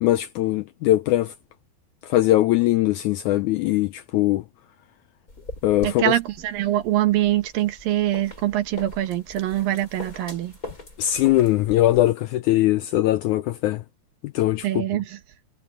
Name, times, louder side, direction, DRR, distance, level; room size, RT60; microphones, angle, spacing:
voice 1, 0.0-1.3 2.0-4.4 5.6-6.1 11.0-13.8 14.2-14.8, left 15 dB, 90° left, 1.7 m, -21 dB
sound 1, 5.3-12.0, left 2 dB, 20° left, 6.7 m, -41 dB
voice 2, 5.8-10.5 14.6-15.2, right 13 dB, 80° right, 3.1 m, -24 dB
omnidirectional pair, 4.1 m